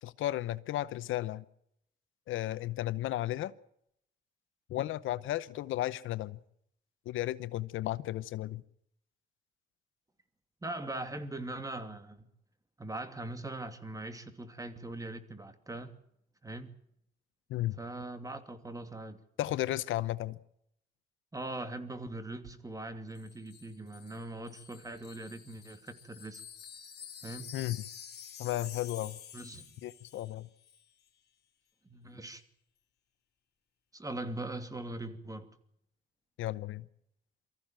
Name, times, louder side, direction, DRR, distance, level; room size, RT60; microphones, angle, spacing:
voice 1, 0.0-1.4 2.3-3.5 4.7-6.4 7.1-8.6 17.5-17.8 19.4-20.4 27.5-27.8 28.4-29.2 29.8-30.5 36.4-36.8, left 14 dB, 80° left, 0.9 m, -34 dB
voice 2, 10.6-12.3 12.8-16.0 16.4-16.7 17.8-19.2 21.3-26.4 27.2-27.5 29.3-29.7 31.8-32.4 33.9-35.5, right 2 dB, 15° right, 2.7 m, -41 dB
Wind chime, 23.1-30.4 30.6-30.8, left 8 dB, 55° left, 4.2 m, -49 dB
24.0 x 15.0 x 9.0 m
cardioid pair, 90°, 20 cm